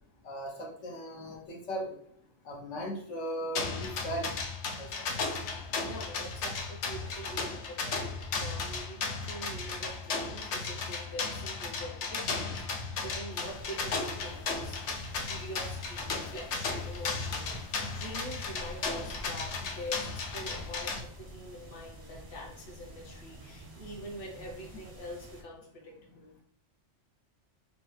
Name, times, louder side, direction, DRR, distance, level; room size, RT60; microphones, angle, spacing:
voice 1, 0.2-1.9 2.5-4.3 4.8-4.9, right 1 dB, 90° left, -1 dB, 1.2 m, -37 dB
sound 1, 3.6-21.0, left 4 dB, 75° left, 0.9 m, -35 dB
voice 2, 5.8-8.0 8.3-26.3, equal, 50° left, -2 dB, 1.2 m, -44 dB
sound 2, 13.3-25.4, right 1 dB, 35° right, 0.4 m, -49 dB
5.0 x 2.1 x 3.1 m, 0.67 s
omnidirectional pair, 1.2 m